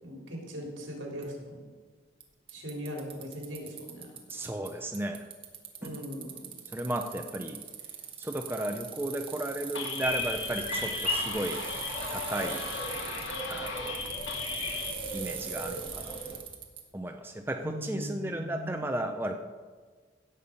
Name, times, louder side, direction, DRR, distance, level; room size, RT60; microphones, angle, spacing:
voice 1, 0.0-1.7 2.5-4.1 5.8-6.5 17.6-18.9, equal, 70° right, -1 dB, 3.6 m, -40 dB
Bicycle, 1.2-1.3 2.2-2.3 2.5-4.7 4.9-16.8, right 8 dB, 30° right, 1.3 m, -41 dB
voice 2, 4.3-5.2 5.8-6.0 6.7-7.6 8.2-11.6 12.1-12.7 13.5-14.0 15.1-16.4 16.9-19.4, right 1 dB, 10° right, 4 dB, 0.5 m, -34 dB
sound 1, 9.7-14.9, left 5 dB, 70° left, 1.3 m, -37 dB
sound 2, 10.0-16.3, left 1 dB, 35° left, 2.6 m, -37 dB
16.5 x 7.2 x 5.3 m, 1.5 s
head